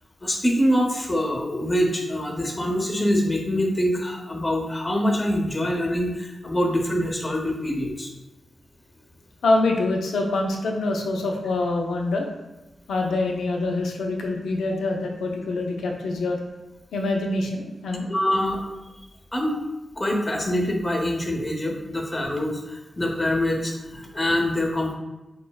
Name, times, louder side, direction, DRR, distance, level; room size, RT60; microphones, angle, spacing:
voice 1, 0.2-8.1 18.1-18.6 18.9-19.0 19.3-19.6 20.0-24.9, left 1 dB, 30° left, 0 dB, 0.7 m, -24 dB
voice 2, 9.4-12.3 12.9-16.4 16.9-18.1, left 2 dB, 85° left, 1 dB, 0.4 m, -25 dB
4.3 x 2.0 x 2.2 m, 1.0 s
cardioid pair, 45°, 0 cm